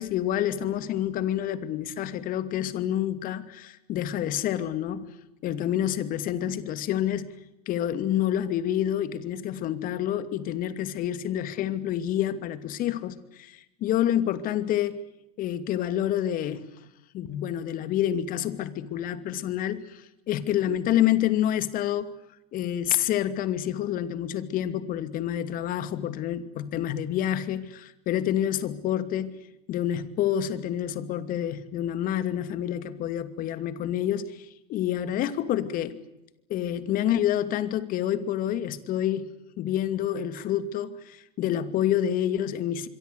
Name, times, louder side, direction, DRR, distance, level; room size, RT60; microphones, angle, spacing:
voice 1, 0.0-5.1 5.4-7.4 7.7-15.0 15.4-16.7 17.1-22.1 22.5-29.4 29.7-36.0 36.5-42.9, left 11 dB, 40° left, 2.7 m, -28 dB
26.0 x 23.5 x 8.3 m
hypercardioid pair, 110°, 21 cm